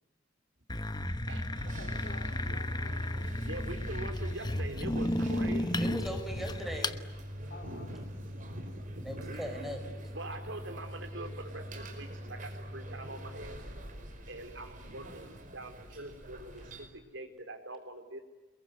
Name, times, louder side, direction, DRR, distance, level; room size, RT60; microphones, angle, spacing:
sound 1, 0.7-7.0, left 1 dB, 20° left, 1.1 m, -33 dB
sound 2, 1.5-16.9, equal, 45° right, 4.9 m, -44 dB
voice 1, 1.8-3.4 7.5-7.9 8.4-8.8, left 1 dB, 55° left, 2 dB, 4.5 m, -51 dB
voice 2, 3.1-6.0 7.6-9.5 10.1-13.8 14.3-18.2, right 1 dB, 70° right, 6 dB, 4.3 m, -44 dB
voice 3, 5.8-7.0 9.0-9.8, equal, ahead, 4 dB, 5.1 m, -39 dB
28.0 x 22.0 x 9.5 m, 1.2 s
head